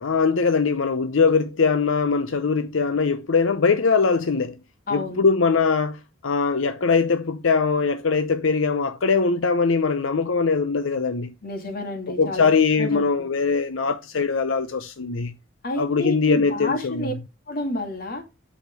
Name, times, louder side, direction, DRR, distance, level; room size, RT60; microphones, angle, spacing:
voice 1, 0.0-4.6 4.9-11.3 12.2-15.3 15.8-17.1, left 4 dB, 80° left, 0.7 m, -21 dB
voice 2, 4.9-5.2 11.4-12.5 12.8-13.0 15.6-17.1 17.5-18.2, left 1 dB, 50° left, 2.4 m, -29 dB
8.1 x 6.6 x 4.7 m
head